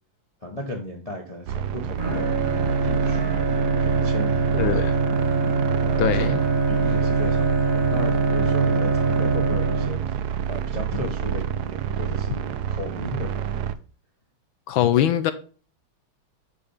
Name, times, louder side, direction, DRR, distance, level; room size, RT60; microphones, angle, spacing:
voice 1, 0.4-2.4 2.8-3.4 3.8-4.9 5.8-10.2 10.5-13.7, left 1 dB, 25° left, 0.8 m, -34 dB
sound 1, 1.5-13.7, right 9 dB, 75° right, 0.9 m, -29 dB
Bowed string instrument, 2.0-10.3, right 3 dB, 35° right, 1.4 m, -23 dB
voice 2, 4.6-4.9 6.0-6.4 14.7-15.3, left 10 dB, 80° left, 1.4 m, -22 dB
9.5 x 3.4 x 5.5 m
omnidirectional pair, 2.3 m